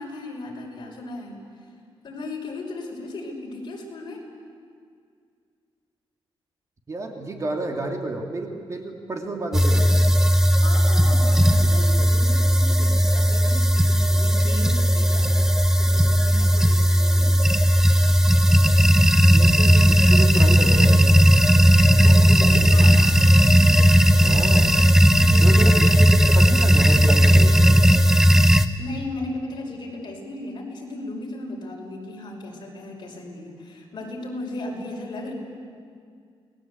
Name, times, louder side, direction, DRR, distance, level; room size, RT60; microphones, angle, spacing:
voice 1, 0.0-1.4 2.0-4.2 10.6-15.5 15.7-17.3 21.9-23.0 25.2-25.9 28.8-35.3, left 2 dB, 50° left, 0 dB, 5.6 m, -36 dB
voice 2, 6.9-10.0 11.3-11.7 19.3-21.2 24.2-24.8 25.4-27.9, right 2 dB, 35° right, 3 dB, 2.6 m, -31 dB
sound 1, 9.5-28.7, equal, 5° right, 1.0 m, -16 dB
29.0 x 20.0 x 8.5 m, 2.2 s
wide cardioid pair, 135°, 10 cm